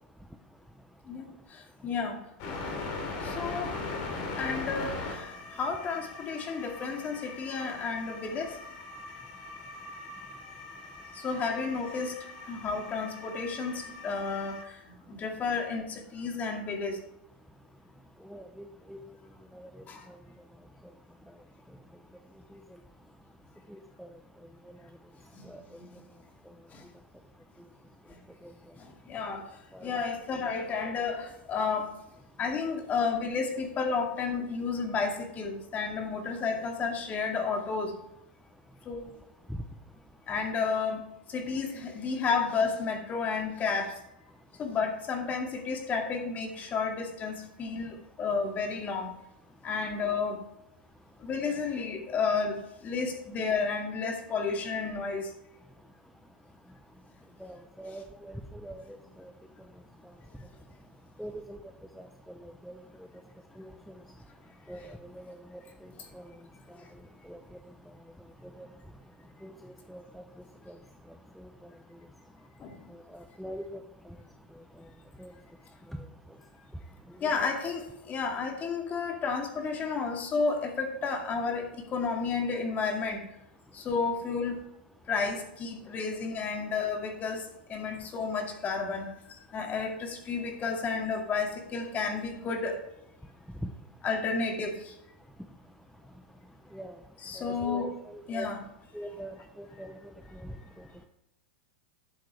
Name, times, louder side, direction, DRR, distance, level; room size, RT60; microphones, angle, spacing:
voice 1, 1.1-2.2 3.2-4.1 4.4-8.6 11.1-14.8 15.1-17.0 19.9-20.1 25.3-25.5 26.7-26.8 28.1-28.2 28.8-29.5 29.8-32.0 32.4-38.0 38.9-39.1 40.3-41.0 41.3-44.0 44.6-49.1 49.6-50.4 51.2-55.3 72.6-72.8 77.2-83.3 83.7-84.6 85.1-92.8 94.0-94.9 97.2-97.9 98.3-98.6, left 5 dB, 30° left, 3 dB, 2.1 m, -32 dB
sound 1, 2.4-14.6, left 3 dB, 50° left, 2.7 m, -40 dB
voice 2, 18.3-19.0 19.5-19.7 24.0-24.1 25.5-25.6 29.7-29.9 57.4-58.3 58.6-58.8 59.2-59.3 61.2-61.6 62.0-62.1 62.7-62.8 63.6-63.7 64.7-64.8 65.1-65.3 66.1-66.2 67.3-67.4 68.6-68.7 69.4-69.5 69.9-70.2 70.7-70.8 73.1-73.8 75.2-75.3 77.2-77.5 96.7-96.9 97.4-97.9 98.3-98.5 98.9-99.9 100.4-100.5, right 1 dB, ahead, 5 dB, 0.7 m, -42 dB
11.5 x 7.4 x 3.4 m, 0.87 s
hypercardioid pair, 115°, 6 cm